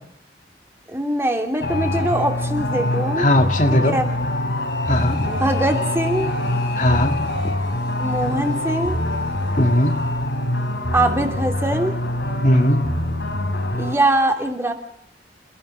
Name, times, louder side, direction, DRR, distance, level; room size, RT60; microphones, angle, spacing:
voice 1, 0.9-3.3 3.7-4.1 5.2-6.3 8.0-9.0 10.9-11.9 13.8-14.7, right 1 dB, 15° right, 3 dB, 3.1 m, -22 dB
sound 1, 1.6-14.0, left 1 dB, 85° left, 5.8 m, -24 dB
voice 2, 3.2-4.0 4.9-5.3 6.8-7.2 9.6-10.0 12.4-12.9, left 1 dB, 45° left, 4 dB, 2.3 m, -18 dB
29.5 x 16.5 x 6.5 m, 0.70 s
head